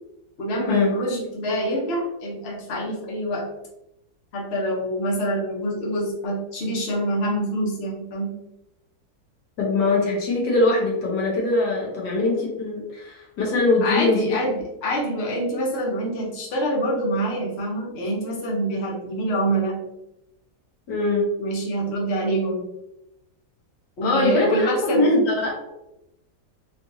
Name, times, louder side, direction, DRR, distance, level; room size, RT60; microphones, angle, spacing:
voice 1, 0.4-3.4 4.3-8.3 13.8-19.8 21.4-22.6 24.0-25.1, right 1 dB, 45° left, -3 dB, 1.1 m, -26 dB
voice 2, 9.6-14.4 20.9-21.3 24.0-25.5, left 2 dB, 80° left, -3 dB, 1.8 m, -22 dB
4.4 x 2.5 x 2.7 m, 0.87 s
omnidirectional pair, 1.8 m